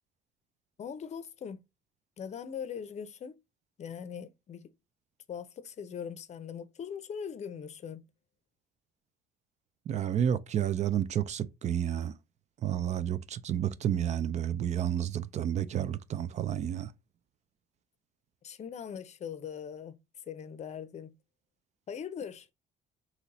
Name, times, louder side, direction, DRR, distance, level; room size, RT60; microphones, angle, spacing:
voice 1, 0.8-1.6 2.2-3.3 3.8-4.7 5.3-8.0 18.4-20.0 20.2-21.1 21.9-22.5, left 7 dB, 40° left, 0.6 m, -40 dB
voice 2, 9.9-12.1 12.6-16.9, right 10 dB, 45° right, 0.4 m, -30 dB
3.9 x 3.0 x 4.1 m
cardioid pair, 110°, 17 cm